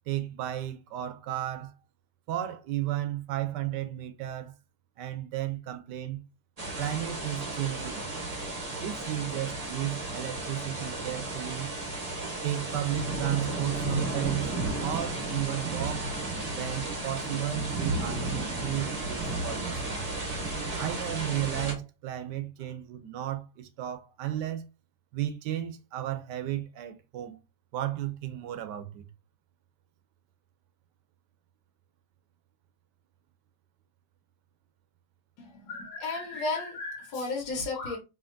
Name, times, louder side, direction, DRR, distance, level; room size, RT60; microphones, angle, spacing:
voice 1, 0.1-1.7 2.3-4.5 5.0-6.2 6.8-8.1 8.8-11.7 12.4-14.5 14.8-16.1 16.5-20.0 20.8-24.7 25.1-27.4 27.7-29.1, right 13 dB, 70° right, 1.1 m, -34 dB
sound 1, 6.6-21.7, right 2 dB, 35° right, 0.6 m, -33 dB
voice 2, 35.5-38.0, left 3 dB, 85° left, 1.7 m, -33 dB
5.0 x 2.8 x 2.5 m
omnidirectional pair, 2.1 m